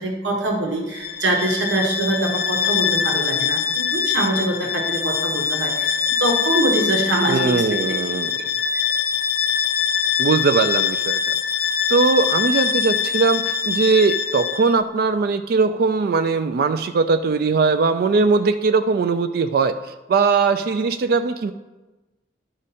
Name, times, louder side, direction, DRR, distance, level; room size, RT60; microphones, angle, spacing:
voice 1, 0.0-7.8 8.7-8.8, right 1 dB, 85° right, 0 dB, 1.3 m, -24 dB
Bowed string instrument, 0.9-14.8, left 7 dB, 50° left, 0.4 m, -23 dB
voice 2, 7.3-8.3 10.2-11.4 11.9-21.5, right 4 dB, 55° right, 9 dB, 0.3 m, -20 dB
11.5 x 4.9 x 4.2 m, 1.1 s
head